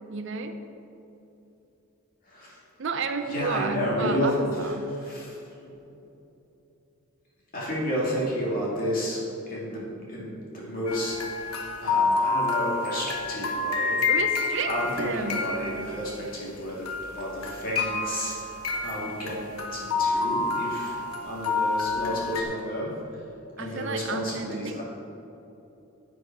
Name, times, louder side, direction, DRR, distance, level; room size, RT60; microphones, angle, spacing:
voice 1, 0.1-0.6 2.8-4.9 14.1-15.6 23.6-24.8, right 4 dB, 55° right, 8 dB, 0.6 m, -31 dB
voice 2, 2.3-2.6 3.3-4.3 4.6-5.4 7.5-14.1 14.7-19.4 19.7-22.9 23.6-24.8, equal, 40° left, -5 dB, 2.6 m, -31 dB
sound 1, 10.9-16.6 16.9-22.4, left 4 dB, 80° left, 1.1 m, -28 dB
10.0 x 8.6 x 4.7 m, 2.9 s
head